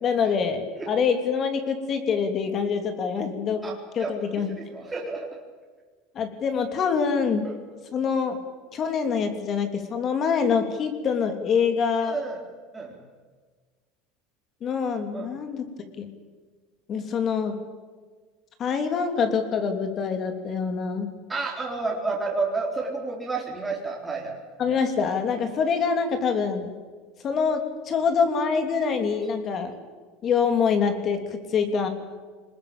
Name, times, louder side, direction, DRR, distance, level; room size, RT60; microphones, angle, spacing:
voice 1, 0.0-3.6 3.9-4.6 6.1-7.5 7.9-8.4 8.7-12.2 14.6-15.6 16.0-16.1 16.9-17.6 18.6-21.1 24.6-26.7 27.2-29.7 30.2-31.9, left 6 dB, 35° left, 7 dB, 3.1 m, -25 dB
voice 2, 4.5-5.3 7.4-7.5 12.0-12.4 12.7-13.0 15.1-15.3 21.3-24.4, right 3 dB, 10° right, -2 dB, 4.0 m, -30 dB
24.0 x 20.5 x 9.0 m, 1.5 s
supercardioid pair, 135°, 0 cm